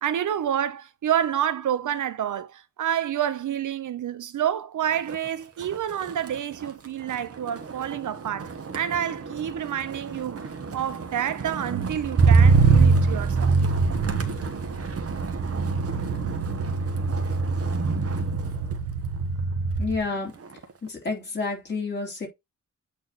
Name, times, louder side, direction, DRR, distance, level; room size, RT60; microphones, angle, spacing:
voice 1, 0.0-13.6, right 10 dB, 85° right, 0.8 m, -28 dB
Motor vehicle (road), 4.9-5.3 5.6-20.1 20.4-20.9, right 4 dB, 50° right, 1.3 m, -24 dB
voice 2, 19.8-20.3 20.8-22.3, left 4 dB, 35° left, 3.5 m, -29 dB
8.5 x 3.5 x 4.1 m
wide cardioid pair, 150°, 30 cm